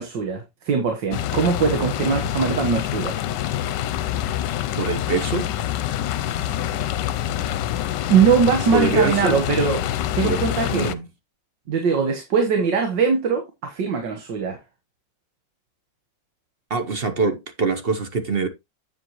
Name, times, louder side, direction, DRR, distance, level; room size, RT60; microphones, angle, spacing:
voice 1, 0.0-3.2 6.1-6.8 8.1-9.9 10.2-10.9 11.7-14.6, right 6 dB, 75° right, 2.0 m, -21 dB
sound 1, 1.1-10.9, left 12 dB, 75° left, 1.2 m, -26 dB
voice 2, 4.7-5.5 8.7-9.4 10.2-10.4 10.7-11.1 16.7-18.5, right 4 dB, 40° right, 1.0 m, -23 dB
8.6 x 7.5 x 3.0 m
omnidirectional pair, 2.0 m